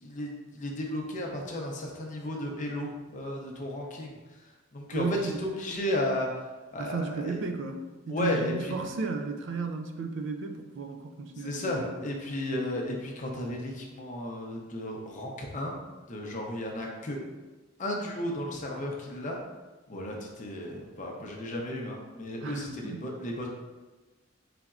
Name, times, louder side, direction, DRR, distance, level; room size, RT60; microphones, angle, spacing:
voice 1, 0.0-4.2 4.7-6.3 6.7-7.4 8.1-8.7 11.4-15.8 16.1-17.2 17.8-19.4 19.9-23.5, left 1 dB, 35° left, 0 dB, 0.6 m, -34 dB
voice 2, 4.9-5.4 6.8-7.8 8.1-12.0 22.4-23.1, right 4 dB, 60° right, 5 dB, 0.4 m, -34 dB
4.0 x 3.3 x 2.4 m, 1.2 s
head